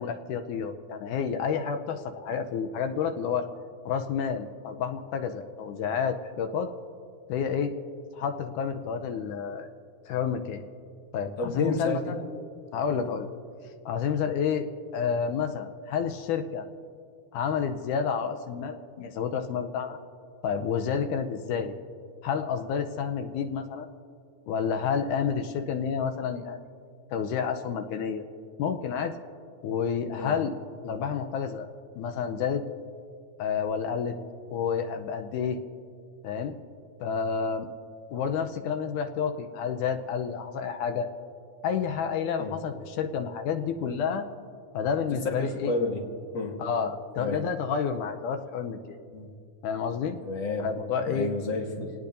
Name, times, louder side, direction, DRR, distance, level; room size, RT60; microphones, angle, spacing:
voice 1, 0.0-3.5 3.9-6.7 7.3-7.7 8.1-9.7 10.1-10.6 11.1-12.2 12.7-13.3 13.9-16.7 17.3-20.0 20.4-21.7 22.2-23.9 24.5-26.6 27.1-28.2 28.6-29.1 29.6-30.5 30.8-31.7 32.0-32.6 33.4-34.2 34.5-35.6 36.2-36.6 37.0-37.7 38.1-41.1 41.6-44.3 44.7-45.7 46.6-49.0 49.6-50.2 50.6-51.3, left 6 dB, 80° left, 6 dB, 2.1 m, -29 dB
voice 2, 11.4-12.2 12.9-13.1 30.2-30.4 42.4-42.6 45.3-46.0 46.3-46.6 47.2-47.4 49.1-49.3 50.2-50.7 51.1-51.9, left 2 dB, 40° left, 0 dB, 2.2 m, -31 dB
27.5 x 18.5 x 2.6 m, 2.4 s
omnidirectional pair, 3.7 m